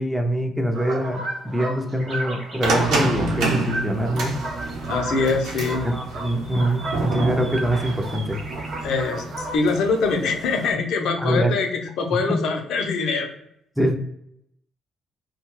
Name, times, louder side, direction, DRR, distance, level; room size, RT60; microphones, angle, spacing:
voice 1, 0.0-4.4 5.8-8.4 11.2-11.6 13.8-13.9, right 1 dB, 5° right, 4 dB, 0.4 m, -24 dB
sound 1, 0.7-9.6, right 1 dB, 55° right, 0.8 m, -34 dB
sound 2, 1.9-2.7 5.1-8.8, right 2 dB, 30° right, 0.9 m, -42 dB
sound 3, 2.6-10.7, right 3 dB, 80° right, 0.8 m, -28 dB
voice 2, 4.9-5.8 8.8-13.3, left 4 dB, 75° left, 3 dB, 0.6 m, -23 dB
2.7 x 2.3 x 3.0 m, 0.73 s
cardioid pair, 115°, 0 cm